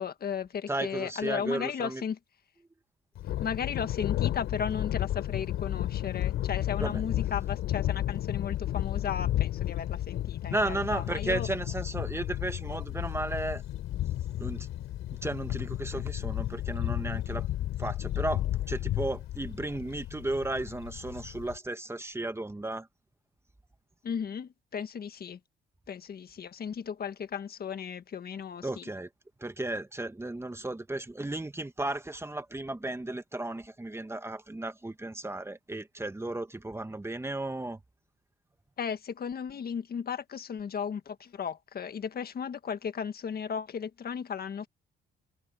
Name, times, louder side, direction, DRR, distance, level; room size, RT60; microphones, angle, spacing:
voice 1, 0.0-2.2 3.4-11.5 24.0-25.4 25.9-28.8 38.8-44.7, left 7 dB, 50° left, 1.6 m, -35 dB
voice 2, 0.7-2.0 6.8-7.0 10.5-13.6 14.4-14.7 15.2-17.4 17.8-22.9 28.6-29.1 29.4-37.8, right 2 dB, 15° right, 1.5 m, -34 dB
Thunder, 3.2-21.6, left 13 dB, 85° left, 3.6 m, -32 dB
cardioid pair, 90°, 20 cm